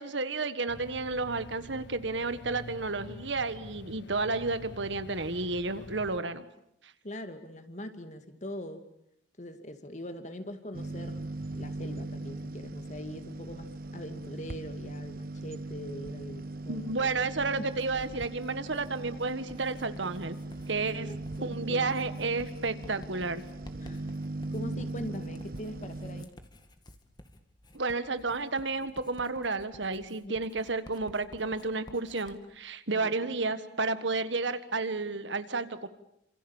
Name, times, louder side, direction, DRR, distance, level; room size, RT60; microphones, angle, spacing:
voice 1, 0.0-6.4 16.7-20.4 20.7-21.1 21.4-23.4 27.7-35.9, right 3 dB, 75° right, 12 dB, 1.6 m, -31 dB
sound 1, 0.7-6.2, left 2 dB, 70° left, 1.2 m, -47 dB
voice 2, 7.0-8.8 9.4-11.2 11.5-17.1 17.6-17.7 20.8-21.9 23.8-24.1 24.5-26.3 30.2-30.4 32.9-33.1, left 1 dB, 40° left, 9 dB, 2.3 m, -42 dB
sound 2, 10.7-26.3, right 2 dB, 50° right, 1.0 m, -39 dB
Writing, 17.7-32.4, left 1 dB, 20° left, 2.1 m, -53 dB
28.5 x 26.5 x 7.2 m, 0.77 s
head